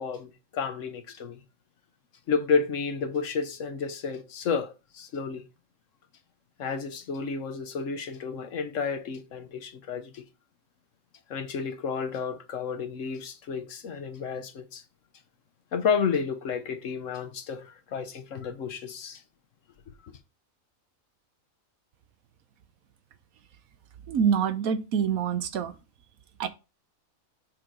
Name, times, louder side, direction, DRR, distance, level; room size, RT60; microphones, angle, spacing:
voice 1, 0.0-1.4 2.3-5.4 6.6-10.2 11.3-14.8 15.7-19.2, left 5 dB, 65° left, 1.2 m, -31 dB
voice 2, 24.1-25.7 26.4-26.5, right 7 dB, 80° right, 1.2 m, -26 dB
6.4 x 3.9 x 4.5 m
omnidirectional pair, 1.5 m